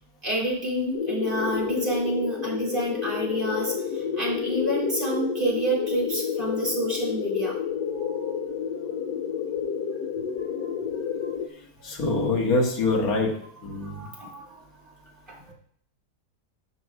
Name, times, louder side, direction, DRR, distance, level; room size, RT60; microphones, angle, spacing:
voice 1, 0.2-7.6 7.9-8.4 8.7-8.9 10.4-10.8 11.2-11.3 13.8-14.6 14.9-15.0 15.3-15.5, right 1 dB, 30° right, -4 dB, 2.6 m, -29 dB
sound 1, 0.9-11.5, left 7 dB, 75° left, 1.2 m, -30 dB
voice 2, 11.8-13.3 13.6-14.1, left 3 dB, 55° left, -1 dB, 2.1 m, -24 dB
12.0 x 6.4 x 2.3 m, 0.63 s
omnidirectional pair, 1.9 m